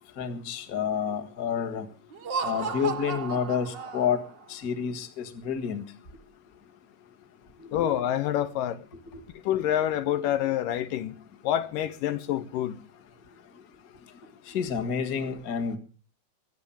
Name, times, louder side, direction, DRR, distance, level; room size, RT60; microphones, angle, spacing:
voice 1, 0.2-1.9 2.4-4.2 4.5-5.9 7.6-8.0 14.5-15.8, left 7 dB, 35° left, 1.5 m, -29 dB
Laughter, 2.1-4.4, right 5 dB, 75° right, 1.0 m, -34 dB
voice 2, 7.7-8.8 9.4-11.2 11.4-12.8, left 11 dB, 80° left, 2.6 m, -27 dB
22.5 x 8.6 x 7.1 m
omnidirectional pair, 3.9 m